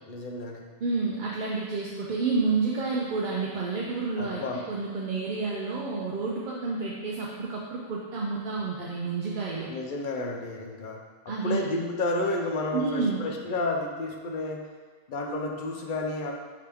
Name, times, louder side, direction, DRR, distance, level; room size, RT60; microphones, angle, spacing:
voice 1, 0.1-0.6 4.2-4.6 9.7-14.6 15.1-16.3, left 2 dB, 60° left, 1 dB, 0.6 m, -31 dB
voice 2, 0.8-9.7 11.3-11.7 12.7-13.2, right 4 dB, 60° right, -4 dB, 0.6 m, -29 dB
4.9 x 2.9 x 3.4 m, 1.4 s
omnidirectional pair, 1.0 m